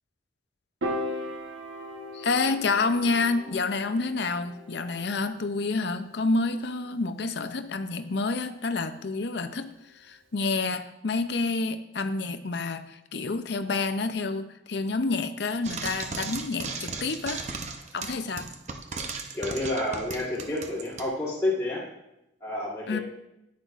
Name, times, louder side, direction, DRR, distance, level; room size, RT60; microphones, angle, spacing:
Piano, 0.8-7.2, left 1 dB, 85° right, 1.3 m, -38 dB
voice 1, 2.1-17.4 17.9-18.5 22.9-23.0, left 3 dB, 60° left, 9 dB, 0.6 m, -28 dB
Frying (food), 15.6-21.1, right 4 dB, 35° right, 0.7 m, -36 dB
voice 2, 19.3-21.8 22.4-23.0, left 1 dB, 15° left, -9 dB, 1.6 m, -29 dB
10.0 x 9.5 x 2.5 m, 0.88 s
head